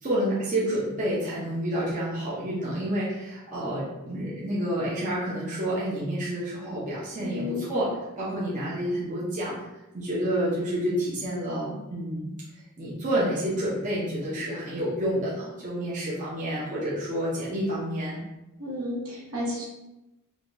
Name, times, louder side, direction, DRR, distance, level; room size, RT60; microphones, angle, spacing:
voice 1, 0.0-7.9 8.2-9.5 9.9-12.3 12.8-18.2, right 1 dB, 35° right, -7 dB, 0.7 m, -29 dB
voice 2, 7.2-7.6 18.6-19.7, left 1 dB, 75° right, -5 dB, 1.3 m, -32 dB
4.7 x 2.3 x 2.6 m, 0.97 s
head